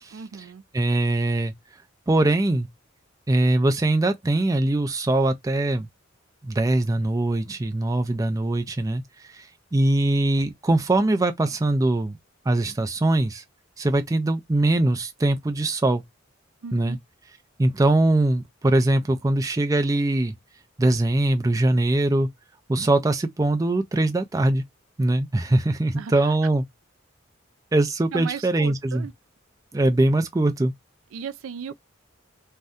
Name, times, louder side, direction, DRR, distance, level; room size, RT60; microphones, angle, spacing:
voice 1, 0.1-0.6 16.6-17.0 26.0-26.3 28.1-29.1 31.1-31.7, right 6 dB, 90° right, 0.4 m, -36 dB
voice 2, 0.7-1.5 2.1-2.7 3.3-5.9 6.4-9.0 9.3-9.4 9.7-12.2 12.5-13.4 13.8-16.0 16.7-17.0 17.6-20.3 20.8-22.3 22.7-24.6 25.0-26.6 27.7-29.1 29.7-30.7, right 2 dB, 15° right, 0.3 m, -22 dB
2.6 x 2.2 x 3.4 m
head